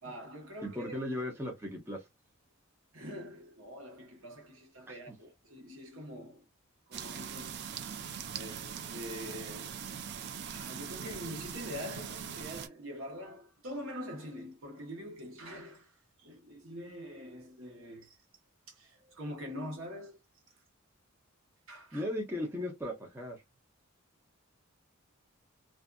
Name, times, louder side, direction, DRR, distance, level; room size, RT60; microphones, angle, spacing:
voice 1, 0.0-1.0 2.9-6.4 6.9-7.6 8.3-9.8 10.4-18.2 18.7-20.2 21.7-22.1, equal, 70° right, 1.1 m, -44 dB
voice 2, 0.6-2.0 21.9-23.4, left 1 dB, 10° right, 0.6 m, -36 dB
sound 1, 6.9-12.7, right 8 dB, 50° right, 0.3 m, -41 dB
2.6 x 2.5 x 2.3 m
head